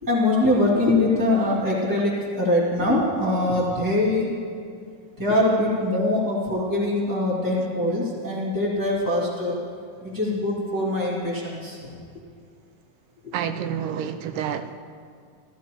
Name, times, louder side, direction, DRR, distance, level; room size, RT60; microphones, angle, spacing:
voice 1, 0.0-4.4 5.2-9.6 10.0-11.9 13.2-13.3, left 1 dB, 10° right, 1.6 m, -23 dB
voice 2, 13.3-14.8, right 8 dB, 80° right, 2.0 m, -29 dB
14.5 x 13.5 x 3.0 m
omnidirectional pair, 3.9 m